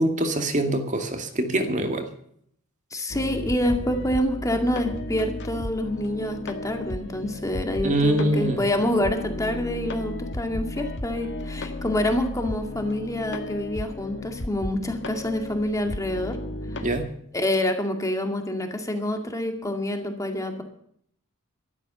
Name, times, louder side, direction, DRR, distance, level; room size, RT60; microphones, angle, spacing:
voice 1, 0.0-2.1 7.8-8.6 16.8-17.1, right 1 dB, 35° right, 6 dB, 2.2 m, -24 dB
voice 2, 2.9-16.4 17.3-20.6, left 1 dB, 15° left, 5 dB, 2.2 m, -27 dB
sound 1, 3.1-17.1, left 2 dB, 55° left, 1.6 m, -35 dB
13.5 x 12.5 x 6.8 m, 0.67 s
head